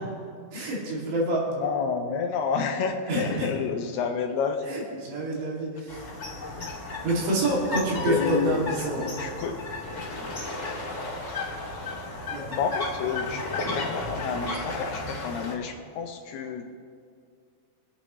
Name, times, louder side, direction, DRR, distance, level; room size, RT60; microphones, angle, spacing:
voice 1, 0.5-1.5 3.1-3.5 4.7-6.0 7.0-9.1 12.3-12.4, right 1 dB, 70° right, -4 dB, 4.6 m, -27 dB
voice 2, 1.6-4.8 8.0-9.6 12.5-16.6, left 6 dB, 80° left, 3 dB, 2.3 m, -30 dB
sound 1, 5.9-15.5, left 2 dB, 35° left, 1.2 m, -34 dB
Piano, 8.0-9.5, left 4 dB, 65° left, 3.1 m, -41 dB
25.0 x 8.7 x 3.1 m, 2.2 s
omnidirectional pair, 5.2 m